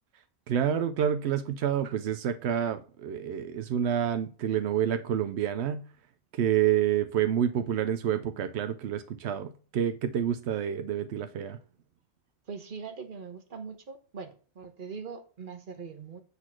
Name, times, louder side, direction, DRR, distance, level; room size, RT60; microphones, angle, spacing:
voice 1, 0.5-5.9 6.3-11.6, right 9 dB, 85° right, 0.9 m, -28 dB
voice 2, 12.5-16.2, right 5 dB, 50° right, 1.2 m, -41 dB
8.1 x 4.1 x 6.1 m
omnidirectional pair, 1.1 m